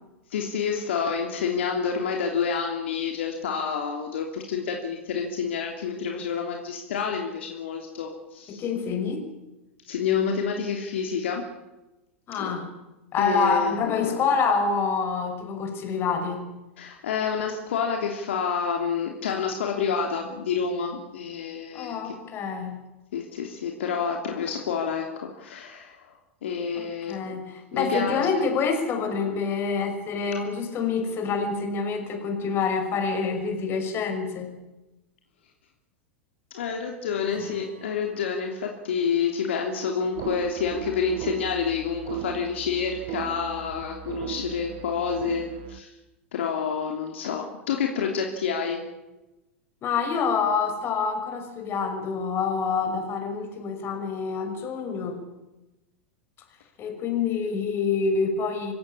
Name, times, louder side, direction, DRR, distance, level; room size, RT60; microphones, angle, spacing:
voice 1, 0.3-8.6 9.9-11.4 12.4-12.6 13.2-14.2 16.8-22.1 23.1-25.1 25.4-26.0 26.4-27.4 27.7-28.4 36.5-45.9 46.3-48.8, left 6 dB, 65° left, 2 dB, 3.2 m, -28 dB
voice 2, 8.5-9.2 12.3-12.6 13.1-16.4 21.7-22.8 26.7-34.5 49.8-55.2 56.8-58.7, left 5 dB, 35° left, 5 dB, 6.1 m, -27 dB
Acoustic guitar / Strum, 37.3-40.6, right 2 dB, 90° right, 7.6 m, -49 dB
sound 1, 40.1-45.8, right 13 dB, 50° right, 1.7 m, -37 dB
25.5 x 16.5 x 8.6 m, 1.0 s
figure-of-eight pair, 95°, 7 cm